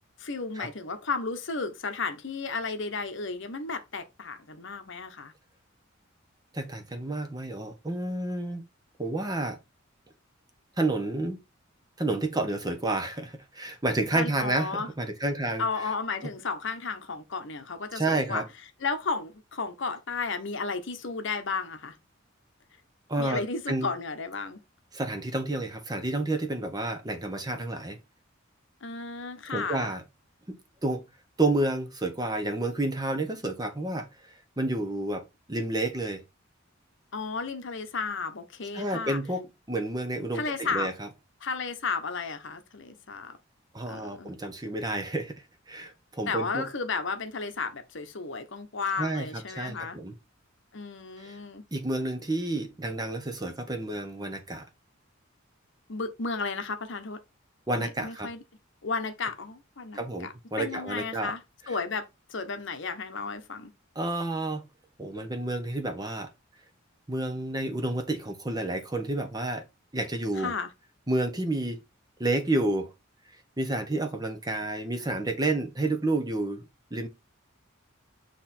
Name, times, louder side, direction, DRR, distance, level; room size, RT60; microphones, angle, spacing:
voice 1, 0.2-5.3 14.1-14.9 15.6-18.4 18.8-22.0 23.2-24.6 28.8-29.9 37.1-39.2 40.3-40.9 41.4-43.4 43.9-44.3 46.3-50.0 50.7-51.6 55.9-57.2 57.8-58.4 58.8-61.4 61.7-63.7 70.4-70.7, left 4 dB, 65° left, 0.9 m, -33 dB
voice 2, 6.5-8.6 9.0-9.6 10.8-11.4 12.0-15.9 17.9-18.4 23.1-23.9 24.9-28.0 29.5-30.0 30.5-30.6 30.8-31.0 31.4-34.1 34.6-35.2 35.5-36.2 38.7-39.4 39.7-41.1 43.7-45.3 45.7-46.7 49.0-50.1 51.2-51.4 51.7-54.7 57.7-58.3 59.9-61.3 64.0-64.6 65.0-66.3 67.1-69.6 69.9-70.5 71.1-71.8 72.2-72.9 73.6-77.1, right 2 dB, 20° right, 1.0 m, -30 dB
7.8 x 3.1 x 4.3 m
head